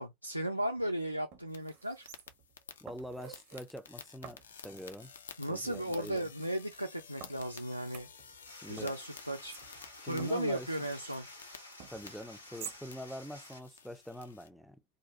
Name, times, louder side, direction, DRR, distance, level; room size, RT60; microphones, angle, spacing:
voice 1, 0.0-2.1 5.4-8.1 8.7-9.6 10.1-11.3, right 1 dB, 85° right, 0.3 m, -35 dB
sound 1, 0.8-0.9 1.3-2.5 2.9-3.7 4.2-5.1 5.7-6.5 7.2-8.5 8.8-11.3 11.8-12.8 13.2-13.3, right 8 dB, 45° right, 0.6 m, -52 dB
sound 2, 1.5-14.5, left 6 dB, 65° left, 0.4 m, -53 dB
voice 2, 2.8-5.1 5.5-6.3 8.6-9.0 10.0-10.7 11.9-14.8, equal, ahead, 0.3 m, -44 dB
sound 3, 8.5-13.6, left 1 dB, 85° left, 0.9 m, -52 dB
2.5 x 2.2 x 2.8 m
figure-of-eight pair, 90°, 0 cm